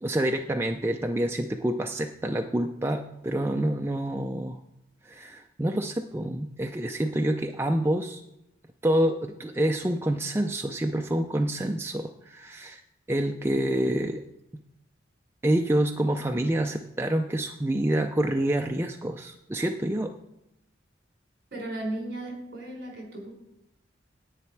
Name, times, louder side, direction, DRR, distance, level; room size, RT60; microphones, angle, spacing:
voice 1, 0.0-4.6 5.0-8.2 8.8-12.8 13.1-14.2 15.4-20.1, right 1 dB, 15° right, 4 dB, 0.4 m, -27 dB
voice 2, 21.5-23.3, right 1 dB, 55° right, 0 dB, 3.8 m, -35 dB
10.0 x 9.5 x 4.5 m, 0.84 s
head